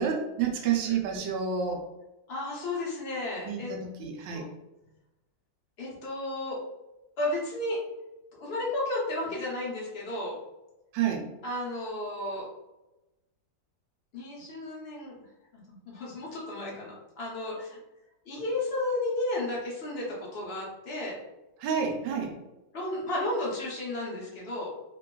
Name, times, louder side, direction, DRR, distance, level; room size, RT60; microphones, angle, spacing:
voice 1, 0.0-1.8 3.4-4.5 10.9-11.3 21.6-22.3, right 7 dB, 80° right, 1 dB, 1.3 m, -29 dB
voice 2, 2.3-3.7 4.3-4.4 5.8-6.6 7.2-7.8 8.4-10.4 11.4-12.5 14.1-15.2 15.7-17.8 18.3-21.2 22.7-24.7, left 2 dB, 50° left, -4 dB, 0.7 m, -33 dB
3.2 x 2.2 x 2.2 m, 0.99 s
omnidirectional pair, 2.0 m